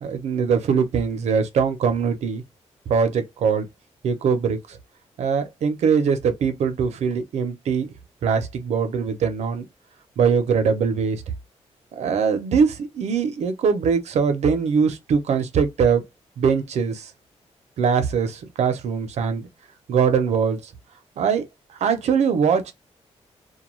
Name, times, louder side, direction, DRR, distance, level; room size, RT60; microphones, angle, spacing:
voice 1, 0.0-2.4 2.9-3.7 4.0-4.8 5.2-7.9 8.2-9.6 10.2-11.2 12.0-16.0 16.4-17.1 17.8-19.5 19.9-20.6 21.2-21.5 21.8-22.7, right 6 dB, 75° right, 0.6 m, -22 dB
2.2 x 2.2 x 3.0 m
wide cardioid pair, 160°, 11 cm